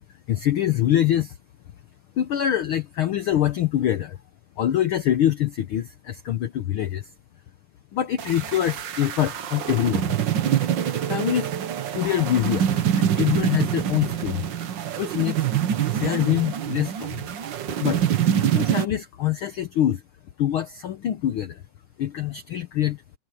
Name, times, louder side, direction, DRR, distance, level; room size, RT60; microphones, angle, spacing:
voice 1, 0.3-1.4 2.2-4.2 4.6-7.1 7.9-10.1 11.1-11.5 11.9-12.7 13.0-14.5 15.0-15.5 15.9-17.3 17.8-18.0 18.3-20.0 20.4-21.6 22.0-23.0, left 11 dB, 85° left, 1.1 m, -24 dB
sound 1, 8.2-18.8, right 9 dB, 65° right, 1.1 m, -25 dB
omnidirectional pair, 3.5 m